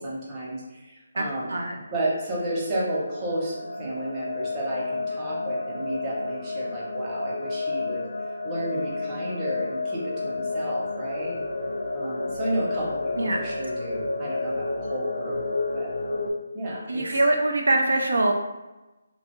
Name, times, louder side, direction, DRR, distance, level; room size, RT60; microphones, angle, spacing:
voice 1, 0.0-1.5 1.9-8.1 8.4-11.4 11.9-15.4 15.7-16.3 16.5-17.1, right 1 dB, 20° right, -6 dB, 0.8 m, -32 dB
sound 1, 1.8-16.3, left 3 dB, 85° left, 0.5 m, -31 dB
voice 2, 16.9-18.3, right 2 dB, 85° right, 2 dB, 0.4 m, -23 dB
2.5 x 2.3 x 2.9 m, 1.1 s
hypercardioid pair, 165°, 0 cm